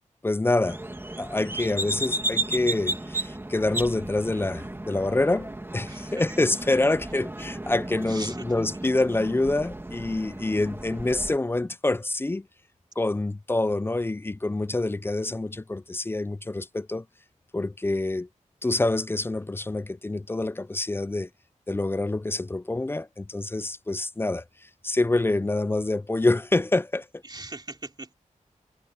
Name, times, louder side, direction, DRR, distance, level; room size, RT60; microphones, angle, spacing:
voice 1, 0.2-0.8 1.2-12.5 13.0-17.1 17.5-18.3 18.6-21.3 21.7-27.2, left 2 dB, 15° left, 0.4 m, -26 dB
sound 1, 0.7-11.4, right 1 dB, 15° right, 2.5 m, -34 dB
voice 2, 5.9-6.2 8.1-8.4 27.2-28.1, right 2 dB, 30° right, 3.2 m, -40 dB
wide cardioid pair, 90°, 13 cm